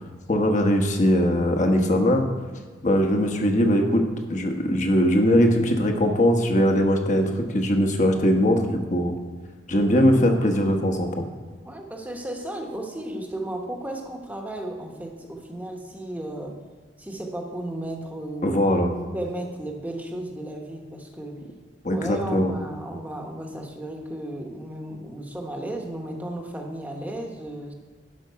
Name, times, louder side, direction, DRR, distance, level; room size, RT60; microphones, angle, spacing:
voice 1, 0.3-2.2 2.8-4.0 4.3-9.1 9.7-11.2 18.4-18.9 21.8-22.5, equal, 45° left, 4 dB, 1.1 m, -20 dB
voice 2, 11.6-16.6 17.0-18.6 19.0-21.5 21.9-27.7, right 1 dB, 10° right, 1 dB, 1.1 m, -34 dB
12.0 x 5.2 x 5.6 m, 1.5 s
head